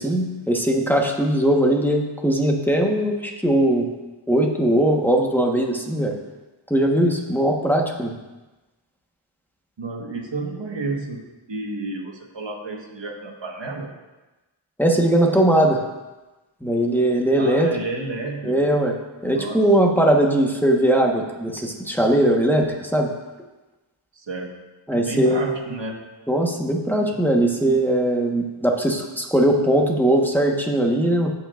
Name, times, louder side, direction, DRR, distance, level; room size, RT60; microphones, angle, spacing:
voice 1, 0.0-3.9 4.3-6.2 6.7-8.2 14.8-15.8 16.6-17.7 18.4-18.9 19.2-23.1 24.9-25.5 26.3-31.3, right 1 dB, 5° left, 0 dB, 1.3 m, -20 dB
voice 2, 9.8-14.0 17.4-18.8 19.2-19.6 24.1-24.6 24.9-26.1, right 3 dB, 60° right, 0 dB, 1.5 m, -31 dB
16.0 x 5.9 x 2.5 m, 1.1 s
wide cardioid pair, 50°, 50 cm